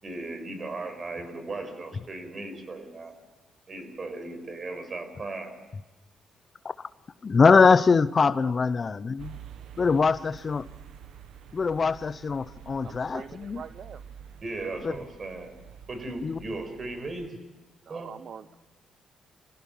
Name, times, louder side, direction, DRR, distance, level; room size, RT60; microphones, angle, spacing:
voice 1, 0.0-3.1 3.7-5.6 14.4-15.5 15.9-17.3 17.9-18.1, right 2 dB, 40° right, 8 dB, 5.2 m, -37 dB
voice 2, 7.2-9.4 9.8-10.7 11.5-13.6 14.8-14.9 16.2-16.4, left 5 dB, 35° left, 15 dB, 0.7 m, -22 dB
voice 3, 8.2-8.6 12.8-14.0 17.9-18.5, right 7 dB, 55° right, 12 dB, 0.7 m, -43 dB
sound 1, 9.2-17.3, right 9 dB, 75° right, 1.1 m, -48 dB
25.0 x 16.0 x 7.3 m, 1.2 s
cardioid pair, 90°, 0 cm